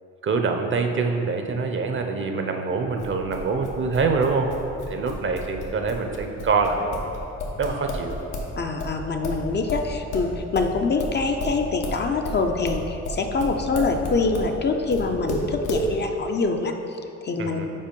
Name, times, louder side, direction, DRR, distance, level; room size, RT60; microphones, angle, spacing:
voice 1, 0.2-4.5 4.9-6.9 7.6-8.2 17.4-17.7, right 4 dB, 40° right, 4 dB, 0.6 m, -25 dB
sound 1, 3.0-8.5 8.8-14.5 14.9-15.9, left 1 dB, 90° left, 1.0 m, -31 dB
voice 2, 8.6-17.6, left 4 dB, 35° left, 4 dB, 0.5 m, -25 dB
5.4 x 4.1 x 5.2 m, 2.8 s
cardioid pair, 90°, 30 cm